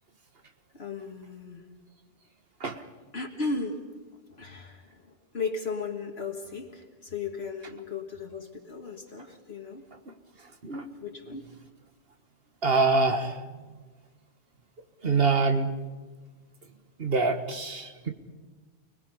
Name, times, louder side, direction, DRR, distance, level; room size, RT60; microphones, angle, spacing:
voice 1, 0.7-1.7 3.1-4.0 4.3-9.8 11.0-11.4, left 4 dB, 60° left, 2 dB, 2.0 m, -36 dB
voice 2, 12.6-13.4 15.0-15.7 17.0-18.1, right 4 dB, 55° right, 6 dB, 1.9 m, -25 dB
29.5 x 20.5 x 5.5 m, 1.3 s
omnidirectional pair, 1.2 m